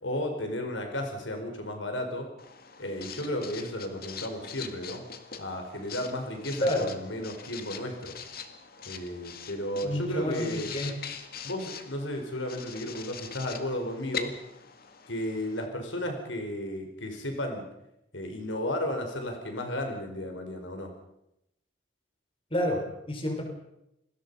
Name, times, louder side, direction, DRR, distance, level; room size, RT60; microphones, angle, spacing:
voice 1, 0.0-2.3 2.8-5.0 5.4-8.1 8.9-10.7 11.4-14.3 15.1-17.7 18.1-20.9, left 1 dB, 85° left, 5 dB, 4.7 m, -34 dB
Writing, 2.4-15.7, left 7 dB, 55° left, 2.1 m, -43 dB
voice 2, 9.8-10.9 22.5-23.4, left 1 dB, 30° left, 3 dB, 5.2 m, -29 dB
28.5 x 20.5 x 5.6 m, 0.84 s
head